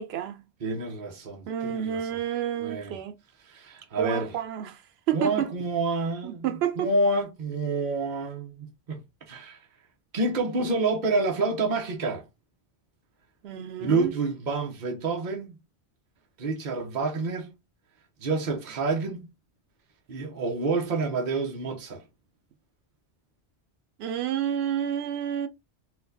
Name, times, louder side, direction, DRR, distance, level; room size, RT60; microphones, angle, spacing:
voice 1, 0.0-0.4 1.5-3.2 4.0-4.8 5.1-5.5 6.2-6.9 13.4-14.1 24.0-25.5, right 10 dB, 85° right, 0.8 m, -29 dB
voice 2, 0.6-2.2 2.6-3.0 3.4-4.4 5.1-9.6 10.1-12.2 13.8-15.5 16.4-17.6 18.2-19.2 20.1-22.0, right 3 dB, 50° right, 0.9 m, -28 dB
4.3 x 2.2 x 2.6 m
omnidirectional pair, 1.1 m